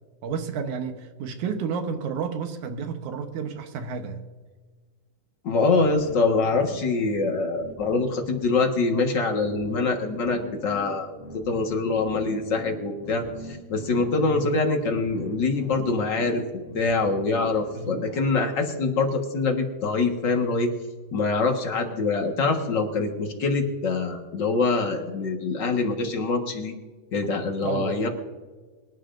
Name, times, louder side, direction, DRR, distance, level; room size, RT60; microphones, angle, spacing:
voice 1, 0.2-4.2 14.2-14.4 17.8-18.0 27.6-28.1, right 5 dB, 70° right, 6 dB, 2.2 m, -31 dB
voice 2, 5.4-16.4 16.7-20.7 21.1-26.7 27.1-28.1, left 3 dB, 50° left, 3 dB, 1.5 m, -24 dB
sound 1, 5.7-18.2, left 1 dB, 5° right, 2.5 m, -42 dB
25.0 x 11.0 x 2.6 m, 1.4 s
omnidirectional pair, 3.9 m